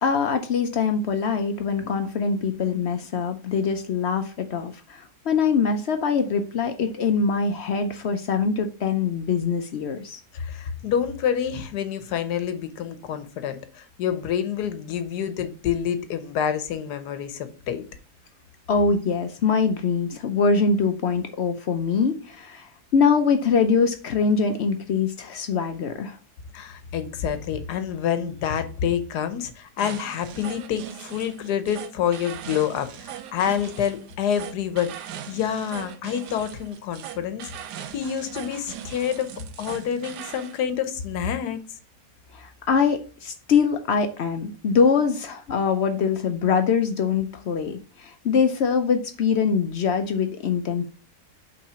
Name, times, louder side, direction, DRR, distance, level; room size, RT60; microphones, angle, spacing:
voice 1, 0.0-10.2 18.7-26.2 42.3-50.9, left 5 dB, 60° left, 0.7 m, -23 dB
voice 2, 10.3-17.8 26.5-37.5 37.9-39.3 39.6-41.6, left 8 dB, 80° left, 1.4 m, -27 dB
sound 1, 29.8-40.6, right 10 dB, 85° right, 1.3 m, -39 dB
5.7 x 3.9 x 5.5 m
omnidirectional pair, 1.7 m